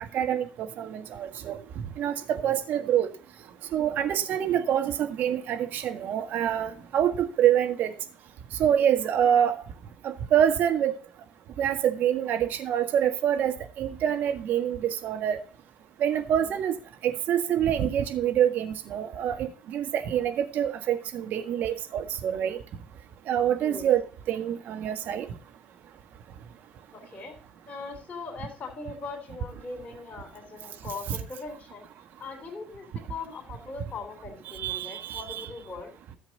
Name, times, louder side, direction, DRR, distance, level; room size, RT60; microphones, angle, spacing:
voice 1, 0.1-3.1 3.7-7.9 8.6-9.6 10.0-10.9 11.6-15.4 16.0-16.7 17.0-22.6 23.3-25.3 31.1-31.2 34.5-35.5, right 10 dB, 55° right, 5 dB, 1.7 m, -26 dB
voice 2, 26.9-27.4 27.7-31.8 32.2-35.9, left 4 dB, 40° left, 2 dB, 3.2 m, -40 dB
14.0 x 7.3 x 4.0 m, 0.40 s
figure-of-eight pair, 55°, 4 cm